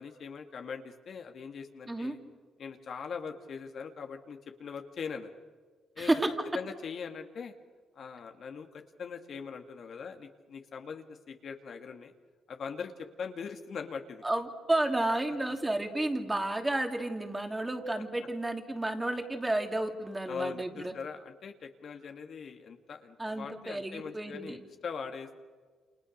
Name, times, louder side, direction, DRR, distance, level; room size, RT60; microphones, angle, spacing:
voice 1, 0.0-2.2 2.6-5.3 6.0-6.2 6.5-7.5 8.0-12.1 12.5-12.9 13.2-14.2 15.3-15.4 20.3-25.4, left 6 dB, 55° left, 5 dB, 2.2 m, -41 dB
voice 2, 6.0-6.5 14.2-20.9 23.2-24.6, right 1 dB, 15° right, 4 dB, 3.0 m, -31 dB
29.0 x 27.5 x 6.6 m, 1.5 s
cardioid pair, 90°, 0 cm